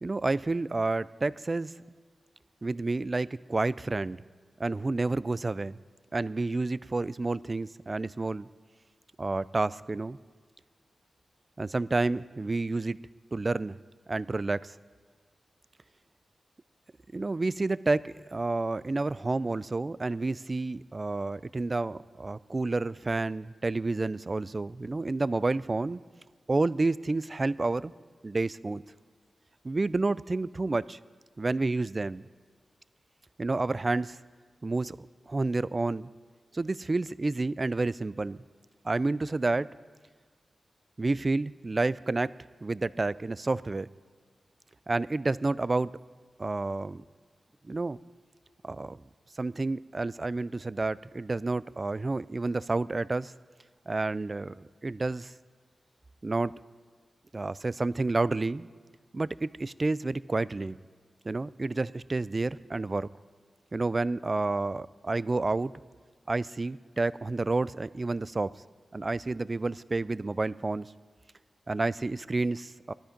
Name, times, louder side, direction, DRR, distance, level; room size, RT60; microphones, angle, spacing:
voice 1, 0.0-1.7 2.6-4.2 4.6-5.8 6.1-8.5 9.2-10.2 11.6-13.0 13.3-13.8 14.1-14.8 17.1-26.0 26.5-27.9 28.2-28.8 29.6-31.0 31.4-32.2 33.4-34.2 34.6-36.1 36.5-38.4 38.8-39.7 41.0-42.3 42.6-43.9 44.9-46.0 46.4-47.0 47.7-48.0 48.6-49.0 49.4-53.3 53.9-55.3 56.2-56.5 57.3-58.7 59.1-60.7 61.2-63.1 63.7-65.7 66.3-68.5 68.9-70.9 71.7-72.9, right 3 dB, 35° right, 18 dB, 0.3 m, -30 dB
18.0 x 13.0 x 5.2 m, 1.5 s
wide cardioid pair, 75°, 0 cm